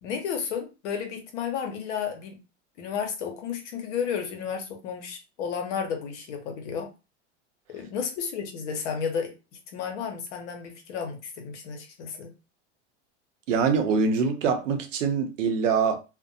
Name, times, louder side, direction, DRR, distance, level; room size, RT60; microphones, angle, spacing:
voice 1, 0.0-2.4 2.8-6.9 7.7-9.3 9.7-12.3, left 7 dB, 70° left, 0.9 m, -32 dB
voice 2, 13.5-16.0, right 5 dB, 80° right, 0.7 m, -24 dB
2.5 x 2.2 x 2.6 m
hypercardioid pair, 105°, 37 cm